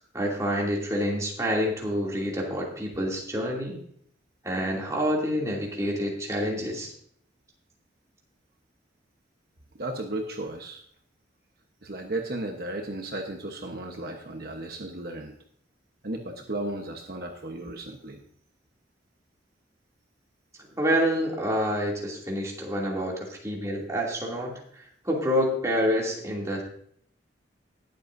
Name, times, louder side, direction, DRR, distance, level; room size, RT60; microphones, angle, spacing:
voice 1, 0.1-3.8 4.4-6.9 20.8-24.6 25.0-26.6, equal, 15° right, -3 dB, 2.7 m, -27 dB
voice 2, 9.8-10.8 11.8-15.4 16.0-18.2, right 2 dB, 55° right, 3 dB, 1.1 m, -34 dB
20.0 x 8.0 x 2.7 m, 0.63 s
head